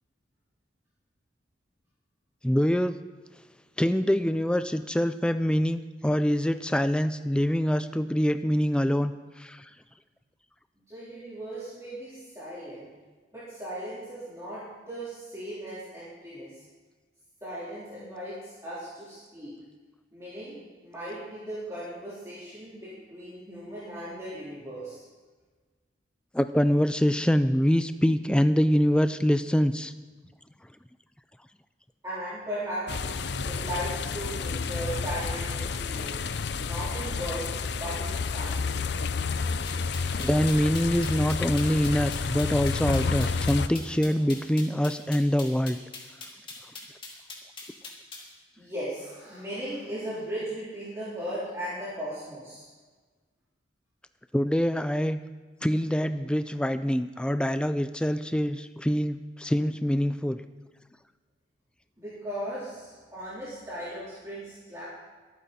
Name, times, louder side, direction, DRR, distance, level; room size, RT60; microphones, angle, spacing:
voice 1, 2.4-3.0 3.8-9.7 26.3-29.9 40.2-45.8 54.3-55.2 55.6-60.4, equal, 5° left, 11 dB, 0.3 m, -25 dB
voice 2, 10.9-12.9 13.3-16.6 17.4-19.5 20.1-25.0 32.0-36.3 36.6-38.8 42.7-42.9 43.6-43.7 48.6-52.7 62.0-64.8, right 1 dB, 15° right, -11 dB, 3.9 m, -37 dB
sound 1, 32.9-43.7, left 4 dB, 65° left, 0.5 m, -30 dB
sound 2, 39.7-48.3, left 4 dB, 25° left, 2.4 m, -42 dB
23.5 x 9.3 x 4.2 m, 1.4 s
head